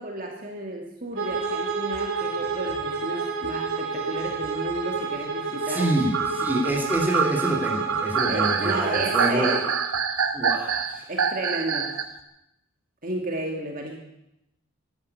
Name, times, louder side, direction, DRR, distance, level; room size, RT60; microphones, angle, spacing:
voice 1, 0.0-5.9 8.3-9.6 11.1-11.9 13.0-14.0, right 1 dB, 40° right, 1 dB, 2.2 m, -32 dB
Bowed string instrument, 1.1-9.7, right 4 dB, 60° right, 3.7 m, -30 dB
sound 1, 1.3-3.6 4.1-5.3 5.9-12.2, right 6 dB, 80° right, 1.4 m, -27 dB
voice 2, 5.7-9.7 10.3-11.1, right 1 dB, 10° right, -1 dB, 3.1 m, -27 dB
12.0 x 12.0 x 9.6 m, 0.86 s
head